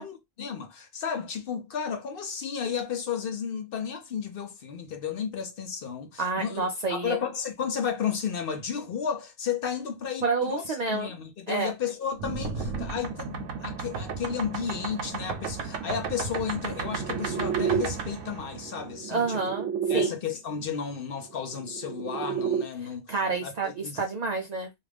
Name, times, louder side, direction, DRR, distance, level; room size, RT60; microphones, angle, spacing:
voice 1, 0.0-6.6 6.9-19.4 19.9-23.1 23.4-24.0, left 7 dB, 60° left, 0.7 m, -33 dB
voice 2, 6.2-7.2 10.2-11.1 11.5-11.7 19.1-19.7 19.9-20.1 22.8-24.8, right 3 dB, 70° right, 0.4 m, -29 dB
sound 1, 12.2-20.1 21.4-22.6, right 6 dB, 90° right, 1.0 m, -31 dB
2.4 x 2.4 x 3.3 m
omnidirectional pair, 1.2 m